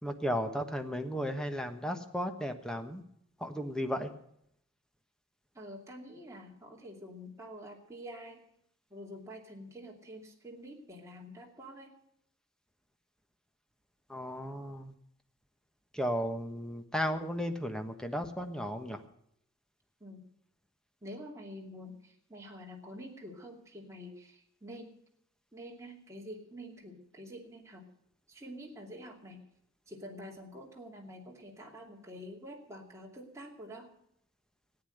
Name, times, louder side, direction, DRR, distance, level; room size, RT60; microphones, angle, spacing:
voice 1, 0.0-3.0 3.4-4.1 14.1-14.9 15.9-19.0, equal, 5° left, 6 dB, 1.2 m, -34 dB
voice 2, 5.5-8.4 8.9-11.9 20.0-20.2 21.0-25.0 25.5-27.9 28.3-29.4 29.9-33.9, equal, 15° right, -1 dB, 2.6 m, -47 dB
14.5 x 9.9 x 7.8 m, 0.71 s
head